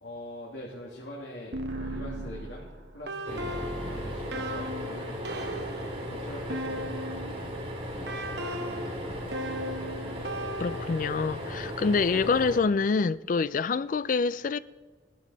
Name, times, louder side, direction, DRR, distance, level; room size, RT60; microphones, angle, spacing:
voice 1, 0.0-3.5 3.8-5.6 6.1-6.9 7.9-8.2 8.5-9.7, left 1 dB, 70° left, 2.4 m, -43 dB
sound 1, 1.5-7.5 8.1-11.3, right 1 dB, 60° right, 1.1 m, -37 dB
sound 2, 1.6-4.3, right 2 dB, 80° right, 2.0 m, -51 dB
sound 3, 3.3-12.6, equal, 35° right, 2.4 m, -37 dB
voice 2, 10.6-14.6, left 4 dB, 45° left, 0.3 m, -26 dB
18.0 x 12.5 x 4.0 m
head